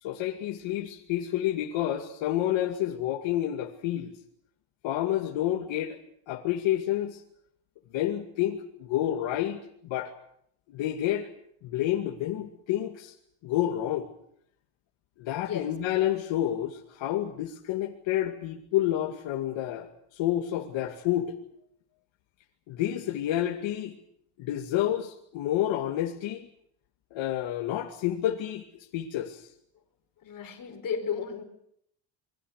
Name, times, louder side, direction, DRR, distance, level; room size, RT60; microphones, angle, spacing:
voice 1, 0.0-4.1 4.8-6.0 6.3-7.2 7.9-10.1 10.7-11.3 11.6-13.1 13.4-14.1 15.2-21.3 22.7-24.0 24.4-26.5 27.1-28.6 28.9-29.5, left 12 dB, 80° left, 1 dB, 2.4 m, -29 dB
voice 2, 30.2-31.4, left 7 dB, 45° left, 5 dB, 4.6 m, -33 dB
28.0 x 22.5 x 6.6 m, 0.70 s
cardioid pair, 140°, 45 cm